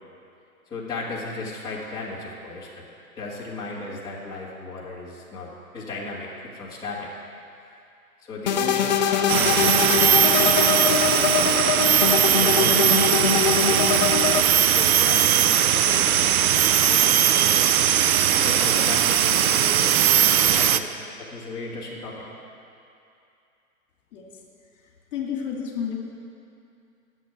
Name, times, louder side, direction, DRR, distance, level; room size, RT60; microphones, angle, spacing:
voice 1, 0.7-2.8 3.2-7.1 8.2-11.0 12.3-14.0 14.6-16.2 16.6-17.7 18.3-22.2, left 3 dB, 10° left, -9 dB, 1.8 m, -36 dB
sound 1, 8.5-14.4, left 8 dB, 30° left, 0.5 m, -23 dB
sound 2, 9.3-20.8, right 10 dB, 70° right, 0.7 m, -19 dB
voice 2, 25.1-26.0, left 7 dB, 55° left, 0 dB, 2.2 m, -30 dB
10.0 x 7.4 x 9.1 m, 2.6 s
hypercardioid pair, 155°, 44 cm